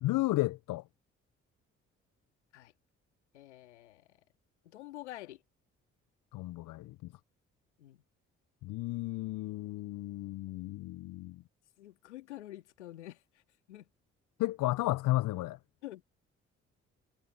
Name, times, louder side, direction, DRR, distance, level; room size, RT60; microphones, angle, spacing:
voice 1, 0.0-0.8 6.3-7.1 8.6-11.4 14.4-15.6, left 18 dB, 65° left, 0.8 m, -33 dB
voice 2, 3.3-4.1 4.7-5.4 7.8-8.0 11.8-13.2 13.7-13.9 15.8-16.1, left 15 dB, 90° left, 2.2 m, -47 dB
hypercardioid pair, 40°, 34 cm